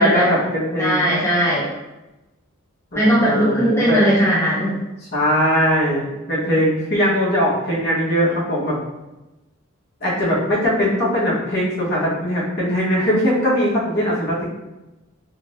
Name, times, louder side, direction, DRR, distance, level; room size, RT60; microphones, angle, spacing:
voice 1, 0.0-1.1 2.9-4.0 5.1-8.8 10.0-14.5, equal, 50° left, -7 dB, 1.4 m, -20 dB
voice 2, 0.8-1.7 3.0-4.8, equal, 15° left, -6 dB, 0.7 m, -18 dB
3.4 x 2.8 x 3.2 m, 1.0 s
head